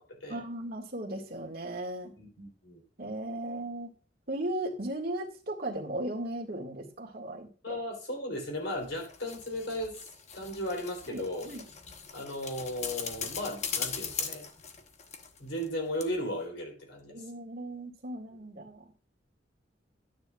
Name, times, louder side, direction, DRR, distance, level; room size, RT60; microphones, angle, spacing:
voice 1, 0.3-2.1 3.0-3.9 4.3-7.8 11.1-11.7 17.1-18.9, right 1 dB, 55° right, 0 dB, 1.9 m, -37 dB
voice 2, 2.2-2.8 7.6-10.0 10.3-11.5 12.1-14.5 15.4-17.2, left 1 dB, 85° left, 2 dB, 3.4 m, -36 dB
sound 1, 8.7-15.7 16.0-16.1, left 6 dB, 40° left, 0.9 m, -39 dB
12.0 x 9.4 x 2.4 m, 0.40 s
head